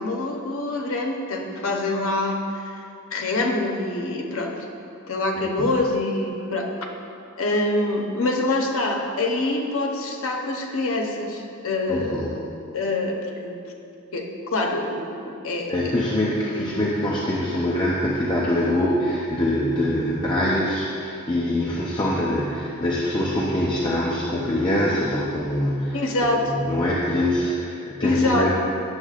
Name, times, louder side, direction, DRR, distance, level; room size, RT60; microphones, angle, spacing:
voice 1, 0.0-2.8 3.1-4.7 5.1-6.7 7.4-12.4 12.7-13.6 14.1-15.9 16.2-16.9 25.9-26.4 28.0-28.5, left 2 dB, 65° left, 1 dB, 0.8 m, -25 dB
voice 2, 11.9-12.4 15.7-28.5, left 1 dB, 20° left, -5 dB, 0.6 m, -24 dB
9.7 x 7.0 x 2.4 m, 2.6 s
head